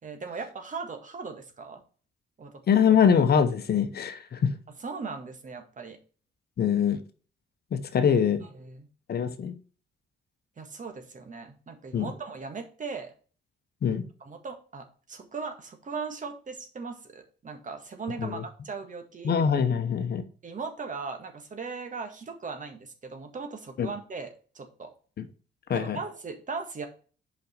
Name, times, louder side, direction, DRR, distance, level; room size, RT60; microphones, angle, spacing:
voice 1, 0.0-1.8 2.4-2.6 4.8-6.0 8.0-8.1 8.5-8.9 10.6-13.1 14.2-19.4 20.4-24.9 25.7-26.9, right 4 dB, 40° right, 6 dB, 1.7 m, -38 dB
voice 2, 2.7-4.5 6.6-7.0 7.7-8.4 9.1-9.5 11.9-12.1 13.8-14.0 18.2-18.4 19.2-20.2 23.8-23.9 25.2-25.3 25.7-26.0, left 7 dB, 55° left, 10 dB, 1.0 m, -23 dB
5.5 x 5.3 x 5.2 m, 0.39 s
cardioid pair, 90°, 20 cm